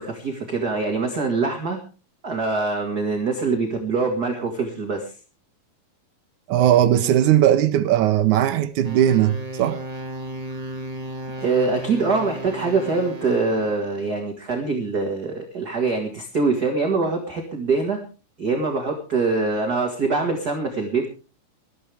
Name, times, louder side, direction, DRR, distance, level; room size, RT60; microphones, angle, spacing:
voice 1, 0.0-1.8 2.2-5.1 11.4-18.0 18.4-21.1, right 3 dB, 35° right, 1.8 m, -24 dB
voice 2, 6.5-9.8, right 11 dB, 75° right, 1.9 m, -18 dB
sound 1, 8.8-14.1, right 1 dB, 20° right, 1.1 m, -34 dB
21.0 x 13.5 x 3.4 m
omnidirectional pair, 4.2 m